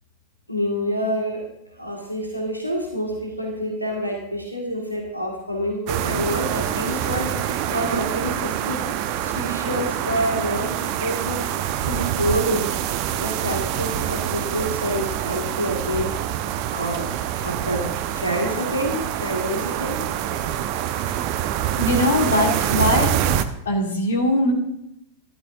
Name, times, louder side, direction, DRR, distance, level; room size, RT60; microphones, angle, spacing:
voice 1, 0.5-1.5 1.8-8.8 9.2-12.7 13.2-16.1 16.7-17.1 17.4-20.0, equal, 90° left, -1 dB, 2.0 m, -27 dB
sound 1, 5.9-23.4, right 10 dB, 45° right, 0.8 m, -26 dB
voice 2, 21.8-23.2 23.7-24.5, left 1 dB, 65° left, 1 dB, 2.3 m, -21 dB
14.0 x 12.5 x 2.7 m, 0.81 s
figure-of-eight pair, 90°, 0 cm